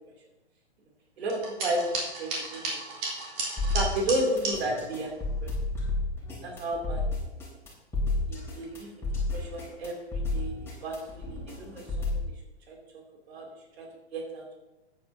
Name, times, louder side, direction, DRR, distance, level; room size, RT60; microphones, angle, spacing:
voice 1, 1.2-2.8 3.7-5.1 5.4-5.5 6.4-7.0 8.3-8.9 9.3-10.5 10.8-12.2 12.7-12.8 13.3-13.4 13.8-13.9 14.1-14.6, right 1 dB, 65° right, 0 dB, 3.1 m, -32 dB
sound 1, 1.3-4.6, right 3 dB, 35° right, 3.9 m, -33 dB
sound 2, 3.6-12.3, left 2 dB, 5° left, 3.6 m, -31 dB
14.0 x 9.4 x 2.8 m, 1.0 s
hypercardioid pair, 125°, 34 cm